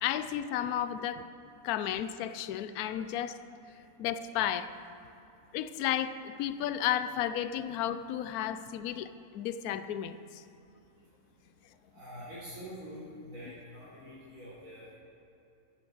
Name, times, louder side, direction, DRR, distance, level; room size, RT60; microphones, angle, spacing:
voice 1, 0.0-1.2 1.6-3.4 4.0-4.7 5.5-10.4, left 10 dB, 75° left, 12 dB, 1.1 m, -33 dB
voice 2, 11.9-13.0 13.3-14.9, equal, 60° right, -12 dB, 4.1 m, -46 dB
11.5 x 8.7 x 7.7 m, 2.8 s
omnidirectional pair, 1.7 m